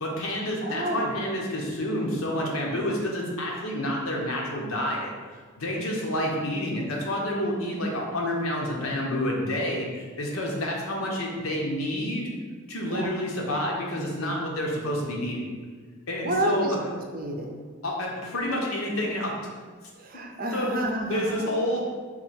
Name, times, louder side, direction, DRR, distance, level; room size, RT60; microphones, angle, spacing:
voice 1, 0.0-5.1 5.6-12.3 12.7-15.5 16.1-16.8 17.8-19.3 20.5-20.7 21.1-21.8, left 1 dB, 80° left, -2 dB, 1.0 m, -29 dB
voice 2, 0.6-1.1 12.9-13.1 16.2-17.6 20.0-21.5, right 1 dB, 40° right, 2 dB, 0.5 m, -30 dB
4.5 x 2.8 x 4.2 m, 1.5 s
head